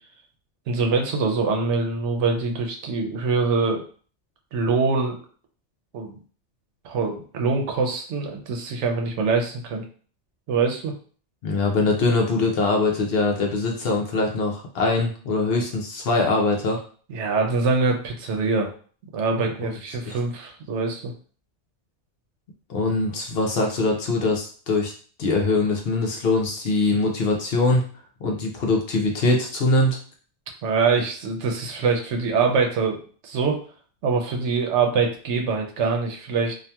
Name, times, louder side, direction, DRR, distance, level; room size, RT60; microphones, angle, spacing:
voice 1, 0.7-3.8 4.5-5.2 5.9-6.2 6.8-9.8 10.5-10.9 17.1-18.7 19.1-21.1 30.6-33.7 34.0-36.5, right 4 dB, 80° right, 2 dB, 0.9 m, -24 dB
voice 2, 11.4-16.8 19.6-19.7 20.1-20.2 22.7-24.9 25.2-27.8 28.2-30.0, left 3 dB, 65° left, 1 dB, 0.7 m, -22 dB
2.8 x 2.4 x 2.2 m, 0.43 s
omnidirectional pair, 1.2 m